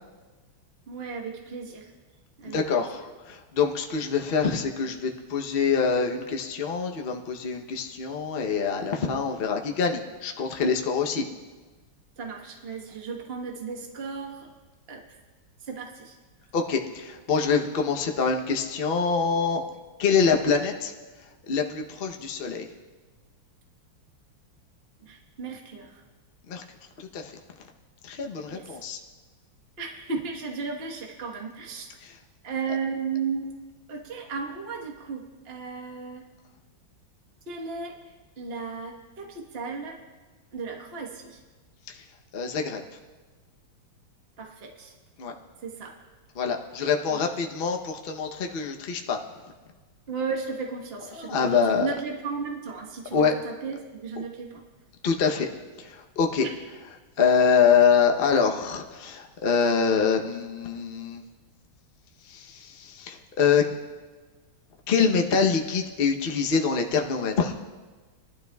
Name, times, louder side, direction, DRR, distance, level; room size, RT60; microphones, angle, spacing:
voice 1, 0.9-1.9 2.4-2.9 12.2-14.5 14.9-15.0 15.7-16.2 25.0-26.0 28.5-28.7 29.8-31.9 32.4-33.5 33.9-36.2 37.5-38.0 38.4-40.0 40.5-41.4 44.4-44.9 45.6-45.9 47.1-47.2 50.1-54.6 56.4-56.5, right 5 dB, 35° right, 1 dB, 1.3 m, -35 dB
voice 2, 2.4-11.3 16.5-19.6 20.0-20.9 21.5-22.7 26.5-26.6 27.0-27.3 28.0-29.0 32.0-32.1 41.9-42.0 42.3-42.8 45.2-45.3 46.4-49.2 51.1-51.9 53.1-53.3 55.0-55.5 55.8-56.5 57.2-61.2 62.3-63.6 64.9-67.5, left 6 dB, 55° left, 2 dB, 0.6 m, -25 dB
20.5 x 12.0 x 2.3 m, 1.3 s
omnidirectional pair, 2.3 m